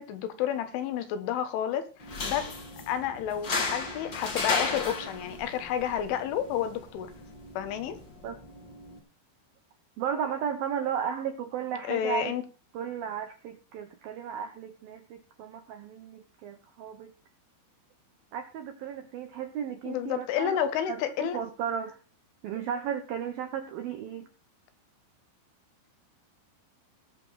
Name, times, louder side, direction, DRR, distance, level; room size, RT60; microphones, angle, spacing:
voice 1, 0.0-2.5 2.9-7.1 7.6-8.0 11.9-12.4 19.9-21.4, left 10 dB, 80° left, 3.8 m, -30 dB
sound 1, 2.0-9.0, left 3 dB, 45° left, 1.5 m, -35 dB
voice 2, 10.0-12.3 12.7-17.1 18.3-20.6 20.9-22.0 22.4-24.3, right 8 dB, 80° right, 2.1 m, -34 dB
19.5 x 7.0 x 4.2 m
omnidirectional pair, 5.6 m